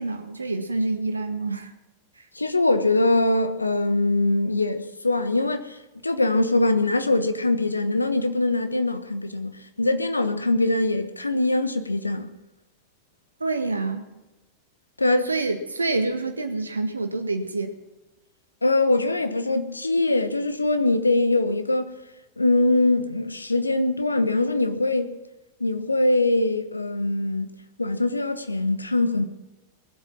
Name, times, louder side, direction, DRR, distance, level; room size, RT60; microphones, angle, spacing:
voice 1, 0.0-1.7 2.2-2.3 13.4-14.1 15.2-17.8, right 3 dB, 80° right, 1.6 m, -27 dB
voice 2, 2.3-12.3 15.0-15.3 18.6-22.0 22.4-25.1 25.6-27.5 27.8-29.2, left 2 dB, 80° left, 1.2 m, -22 dB
20.5 x 8.0 x 7.3 m
figure-of-eight pair, 90°, 0 cm